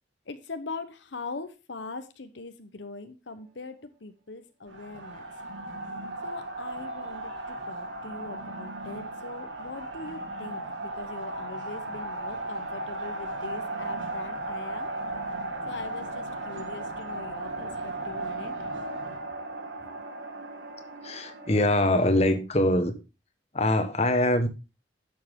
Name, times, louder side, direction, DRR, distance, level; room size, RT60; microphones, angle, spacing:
voice 1, 0.3-5.2 6.2-14.9 15.7-18.6 19.0-19.2, left 3 dB, 75° left, 0.9 m, -41 dB
sound 1, 4.7-22.4, right 2 dB, 80° right, 1.9 m, -36 dB
voice 2, 21.0-22.9 23.5-24.5, left 1 dB, 35° left, 1.3 m, -23 dB
11.0 x 7.3 x 3.6 m
head